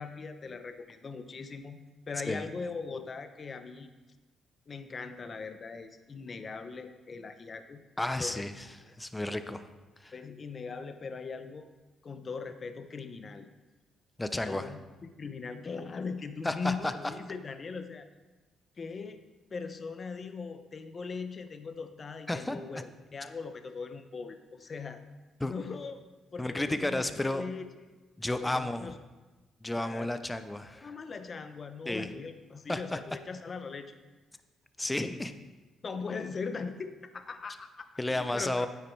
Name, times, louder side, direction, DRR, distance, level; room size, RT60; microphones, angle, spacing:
voice 1, 0.0-3.9 4.7-7.8 8.2-8.5 8.8-8.9 10.1-11.7 12.0-13.5 14.3-18.1 18.8-22.8 23.1-25.0 25.4-26.0 26.3-28.0 28.4-28.9 29.7-30.1 30.8-34.0 35.8-38.7, left 4 dB, 40° left, 9 dB, 0.9 m, -40 dB
voice 2, 8.0-8.7 9.0-9.7 10.0-10.1 14.2-14.7 16.4-16.9 22.3-22.6 25.4-25.5 26.4-27.4 28.2-28.9 29.6-30.9 31.9-32.2 32.7-33.0 34.8-35.3 38.0-38.7, left 1 dB, 15° left, 10 dB, 0.7 m, -32 dB
9.5 x 8.8 x 4.6 m, 1.2 s
cardioid pair, 90°, 0 cm